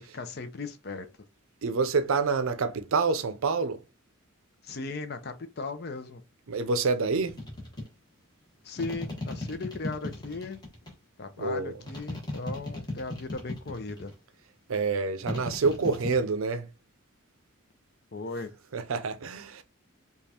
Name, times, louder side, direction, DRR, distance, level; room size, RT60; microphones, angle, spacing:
voice 1, 0.1-1.1 4.6-6.2 8.6-10.6 11.2-14.1 18.1-18.5, left 3 dB, 50° left, 0.6 m, -37 dB
voice 2, 1.6-3.8 6.5-7.4 11.4-11.7 14.7-16.7 18.7-19.6, right 4 dB, 75° right, 0.5 m, -27 dB
sound 1, 7.3-7.9 8.8-10.9 11.9-14.1 15.3-16.2, left 2 dB, 20° left, 1.2 m, -36 dB
5.0 x 2.4 x 2.8 m
head